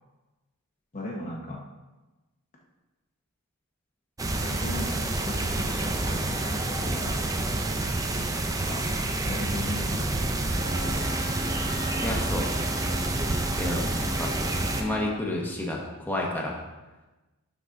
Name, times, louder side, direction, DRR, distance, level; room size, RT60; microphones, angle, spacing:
voice 1, 0.9-1.6 4.4-7.2 8.6-8.9 9.2-10.3, left 1 dB, 35° left, -1 dB, 0.7 m, -37 dB
sound 1, 4.2-14.8, right 2 dB, 15° right, 0.4 m, -28 dB
Wind instrument woodwind instrument, 10.5-15.1, left 1 dB, 70° right, 2.3 m, -38 dB
voice 2, 11.6-12.5 13.6-14.4 14.8-16.5, left 1 dB, 10° left, -2 dB, 1.0 m, -31 dB
11.5 x 4.0 x 3.7 m, 1.1 s
head